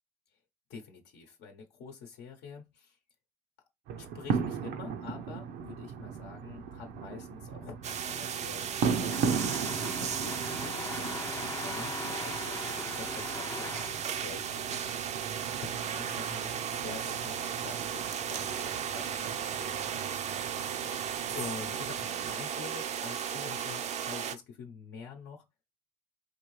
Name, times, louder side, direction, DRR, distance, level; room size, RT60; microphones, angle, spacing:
voice 1, 0.7-2.9 4.0-9.2 10.0-13.7 14.2-14.9 15.6-19.7 21.3-25.4, left 5 dB, 80° left, 0.8 m, -46 dB
sound 1, 3.9-22.4, right 6 dB, 80° right, 0.6 m, -38 dB
sound 2, 7.8-24.3, right 8 dB, 40° right, 0.4 m, -35 dB
sound 3, 9.0-14.8, left 4 dB, 20° left, 0.4 m, -41 dB
4.4 x 2.7 x 3.1 m
cardioid pair, 110°, 17 cm